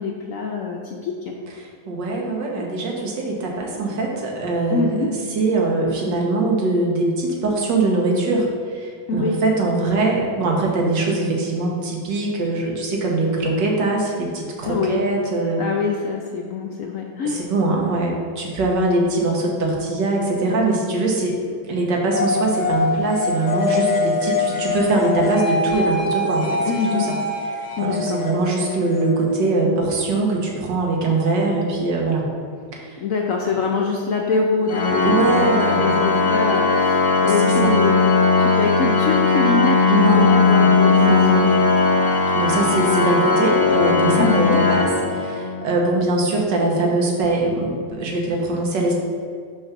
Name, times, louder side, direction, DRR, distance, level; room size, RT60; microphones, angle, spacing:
voice 1, 0.0-1.3 4.7-5.1 9.1-9.4 14.6-15.0 15.6-17.4 26.7-27.1 27.8-28.2 33.0-37.9 38.4-41.4 44.2-44.6, left 4 dB, 65° left, 0 dB, 0.8 m, -24 dB
voice 2, 1.6-15.6 17.2-21.4 21.6-26.6 26.9-27.1 27.5-32.2 32.7-33.0 33.5-33.6 35.0-35.9 37.3-37.7 39.9-40.6 40.9-41.6 42.3-48.9, right 2 dB, 75° right, -1 dB, 1.9 m, -22 dB
sound 1, 22.1-29.6, left 3 dB, 40° left, 0.6 m, -24 dB
Organ, 34.7-45.7, left 4 dB, 90° left, 0.4 m, -18 dB
6.7 x 4.3 x 5.9 m, 2.2 s
omnidirectional pair, 2.0 m